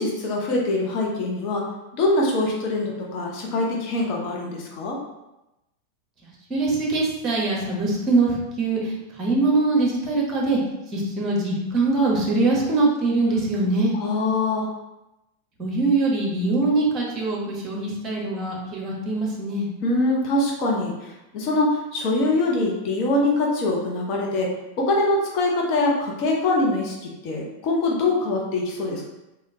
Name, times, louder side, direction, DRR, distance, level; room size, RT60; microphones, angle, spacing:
voice 1, 0.0-1.6 1.9-5.0 13.9-14.7 19.8-29.0, left 2 dB, 40° left, -2 dB, 0.8 m, -23 dB
voice 2, 6.2-10.6 10.9-13.9 15.6-19.7, right 3 dB, 25° right, -2 dB, 1.1 m, -23 dB
3.5 x 3.2 x 2.8 m, 0.95 s
figure-of-eight pair, 90°, 0 cm